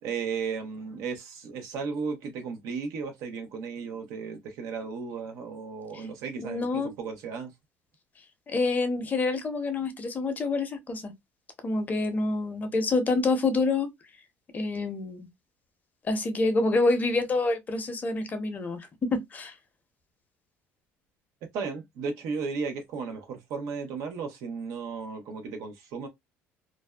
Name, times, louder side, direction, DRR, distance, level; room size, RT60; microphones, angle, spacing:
voice 1, 0.0-6.7 7.0-7.5 21.5-26.1, right 5 dB, 75° right, 0.8 m, -35 dB
voice 2, 6.4-6.9 8.5-11.1 11.6-13.9 14.5-15.3 16.0-19.5, left 3 dB, 30° left, 0.7 m, -27 dB
2.5 x 2.1 x 2.2 m
cardioid pair, 110°, 5 cm